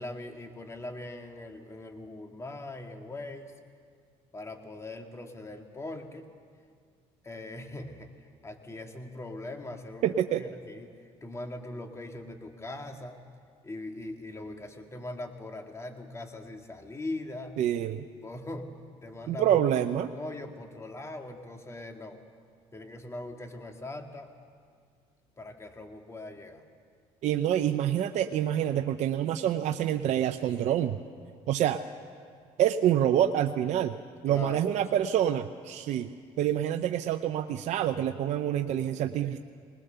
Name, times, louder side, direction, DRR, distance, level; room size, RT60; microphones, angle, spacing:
voice 1, 0.0-3.5 4.3-6.3 7.2-13.2 13.6-17.6 18.2-19.6 20.0-22.2 22.7-24.3 25.4-26.6 34.3-34.7 35.0-35.1, left 2 dB, 20° left, 4 dB, 2.2 m, -41 dB
voice 2, 10.0-10.4 17.6-18.0 19.3-20.1 27.2-31.0 31.5-31.8 32.6-34.0 34.2-36.1 36.4-39.4, right 10 dB, 65° right, 7 dB, 0.7 m, -27 dB
20.0 x 19.5 x 6.9 m, 2.1 s
supercardioid pair, 80°, 13 cm